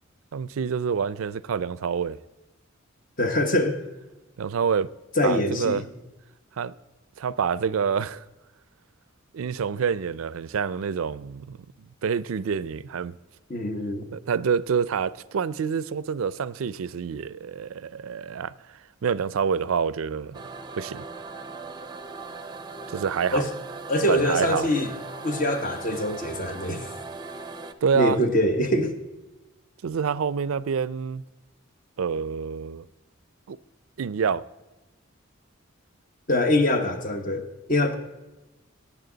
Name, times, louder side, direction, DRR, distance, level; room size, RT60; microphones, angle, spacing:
voice 1, 0.3-2.2 4.4-4.9 5.2-5.8 6.6-6.7 7.2-8.2 9.3-11.7 12.0-13.1 14.1-18.5 19.0-20.4 20.8-21.0 22.9-23.4 24.1-24.7 27.8-28.2 29.8-31.2 32.0-32.8 33.5-33.6 34.0-34.5, right 6 dB, 90° right, 0.4 m, -27 dB
voice 2, 3.2-3.8 5.2-5.8 13.5-14.1 23.3-23.5 23.9-24.9 25.2-26.9 27.9-28.9 36.3-37.9, left 1 dB, 40° left, 1.2 m, -24 dB
sound 1, 20.3-27.7, right 3 dB, 20° right, 0.5 m, -39 dB
17.5 x 8.7 x 3.9 m
head